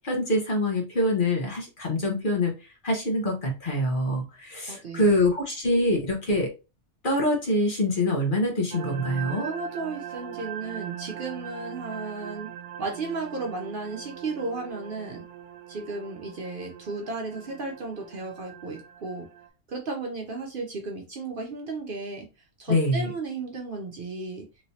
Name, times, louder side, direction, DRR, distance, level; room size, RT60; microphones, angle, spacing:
voice 1, 0.0-2.5 2.8-6.5 7.0-9.5 22.7-23.1, left 1 dB, 45° left, 1 dB, 1.1 m, -25 dB
voice 2, 4.7-5.2 9.4-12.5 12.8-15.2 15.7-19.3 19.7-22.3 22.6-24.5, right 3 dB, 55° right, 1 dB, 0.7 m, -34 dB
sound 1, 8.7-19.5, right 10 dB, 80° right, 0.9 m, -40 dB
3.1 x 3.0 x 2.7 m, 0.30 s
omnidirectional pair, 1.2 m